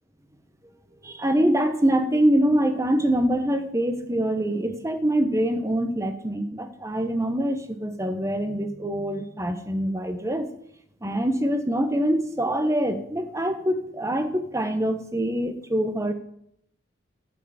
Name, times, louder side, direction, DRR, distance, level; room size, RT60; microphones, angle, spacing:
voice 1, 1.0-10.5 11.0-16.1, right 1 dB, 15° right, 8 dB, 0.8 m, -24 dB
12.0 x 4.6 x 7.1 m, 0.71 s
head